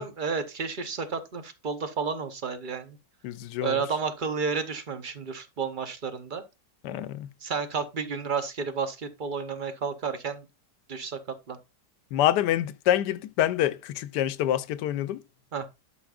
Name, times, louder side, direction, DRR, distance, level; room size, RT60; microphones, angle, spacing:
voice 1, 0.0-3.0 3.6-6.4 7.4-10.4 10.9-11.2 11.5-11.6 15.5-15.7, right 5 dB, 45° right, 0.6 m, -31 dB
voice 2, 3.2-3.8 6.8-7.3 12.1-15.2, left 12 dB, 80° left, 1.2 m, -26 dB
11.5 x 5.8 x 2.4 m
omnidirectional pair, 1.8 m